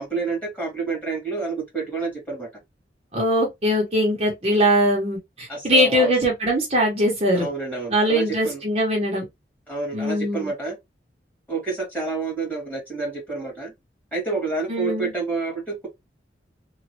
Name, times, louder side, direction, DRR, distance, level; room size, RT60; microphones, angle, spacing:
voice 1, 0.0-2.5 5.5-6.1 7.3-8.6 9.7-10.8 11.5-13.7 14.1-15.9, right 4 dB, 10° left, 1.8 m, -28 dB
voice 2, 3.1-7.5 7.9-9.2 9.9-10.5 14.7-15.1, equal, 35° right, 0.9 m, -21 dB
3.0 x 2.3 x 2.8 m
head